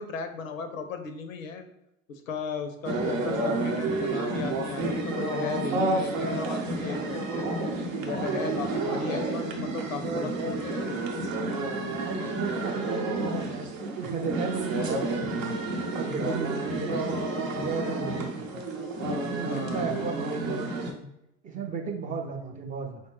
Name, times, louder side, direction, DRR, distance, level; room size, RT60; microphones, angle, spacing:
voice 1, 0.0-1.7 2.1-7.5 8.0-11.0 19.4-20.0 22.6-22.9, left 4 dB, 85° left, 8 dB, 0.5 m, -36 dB
sound 1, 2.8-20.9, right 2 dB, 80° right, 0.7 m, -30 dB
voice 2, 12.0-17.2 17.4-18.6 19.2-21.1 21.4-23.0, right 5 dB, 20° right, 3 dB, 0.3 m, -35 dB
4.3 x 2.2 x 3.0 m, 0.82 s
figure-of-eight pair, 75°, 39 cm